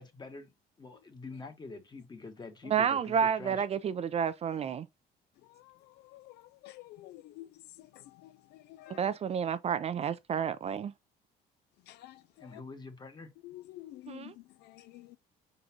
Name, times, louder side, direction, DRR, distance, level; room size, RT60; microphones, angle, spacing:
voice 1, 0.0-3.6 12.4-13.3, left 3 dB, 25° left, 1.2 m, -46 dB
voice 2, 2.7-4.9 8.9-10.9 14.1-14.3, right 7 dB, 40° right, 0.4 m, -30 dB
voice 3, 5.4-9.1 11.9-12.6 13.4-15.2, left 15 dB, 75° left, 0.4 m, -50 dB
4.8 x 4.0 x 2.8 m
cardioid pair, 110°, 17 cm